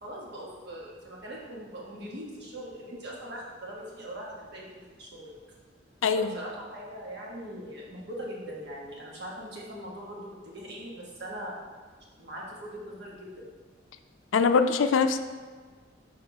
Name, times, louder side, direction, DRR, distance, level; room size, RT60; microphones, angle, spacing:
voice 1, 0.0-5.3 6.3-11.5 12.2-13.5, equal, 60° right, -4 dB, 1.3 m, -41 dB
voice 2, 6.0-6.3 14.3-15.2, left 5 dB, 85° left, 9 dB, 0.4 m, -22 dB
4.8 x 4.4 x 4.7 m, 1.5 s
head